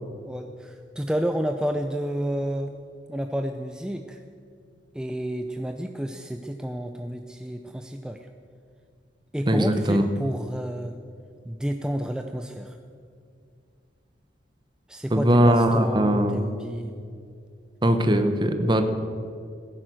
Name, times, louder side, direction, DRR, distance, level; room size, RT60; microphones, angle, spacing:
voice 1, 0.3-2.7 3.1-4.2 4.9-8.3 9.3-11.0 11.5-12.8 14.9-16.9, equal, 5° right, 5 dB, 0.5 m, -30 dB
voice 2, 9.5-10.0 15.1-16.4 17.8-18.8, equal, 25° right, 7 dB, 1.0 m, -20 dB
16.5 x 10.5 x 7.7 m, 2.3 s
head